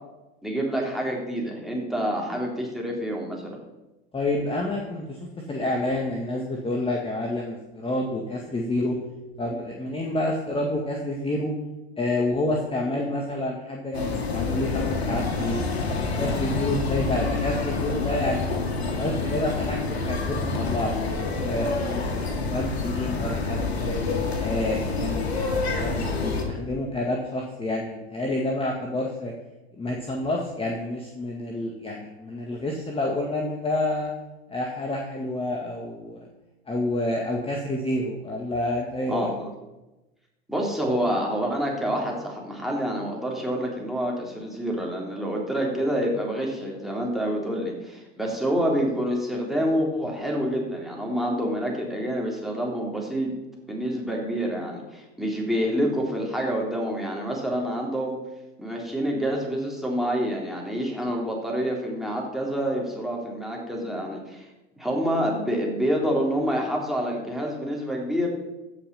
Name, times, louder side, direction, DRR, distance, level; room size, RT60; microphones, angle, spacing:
voice 1, 0.4-3.6 39.1-39.5 40.5-53.3 53.7-58.2 58.6-64.5 64.8-68.3, equal, ahead, -2 dB, 3.5 m, -27 dB
voice 2, 4.1-5.2 5.5-9.0 9.4-11.5 12.0-18.5 18.9-22.0 22.4-23.9 24.4-25.4 25.8-29.3 29.8-34.1 34.5-36.3 36.7-39.3, left 1 dB, 15° left, 0 dB, 1.8 m, -28 dB
sound 1, 13.9-26.4, left 4 dB, 80° left, 2.0 m, -27 dB
15.5 x 5.9 x 5.6 m, 1.0 s
hypercardioid pair, 85°, 32 cm